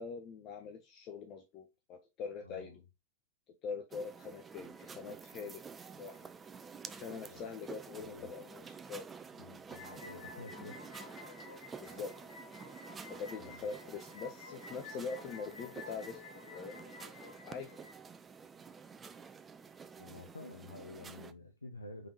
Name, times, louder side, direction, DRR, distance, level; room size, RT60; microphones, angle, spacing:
voice 1, 0.0-2.8 3.6-5.6 6.0-6.2 6.8-9.0 11.8-12.1 13.1-16.2 16.5-16.8 17.4-17.7, left 5 dB, 35° left, 0.7 m, -43 dB
voice 2, 2.4-2.8 7.3-7.4 8.0-8.3 9.4-10.8 13.4-13.6 20.0-22.1, left 2 dB, 80° left, 0.5 m, -50 dB
sound 1, 3.9-21.3, right 5 dB, 20° right, 0.4 m, -50 dB
sound 2, 9.7-17.9, left 5 dB, 60° left, 1.2 m, -52 dB
4.9 x 3.5 x 2.7 m
figure-of-eight pair, 90°, 0 cm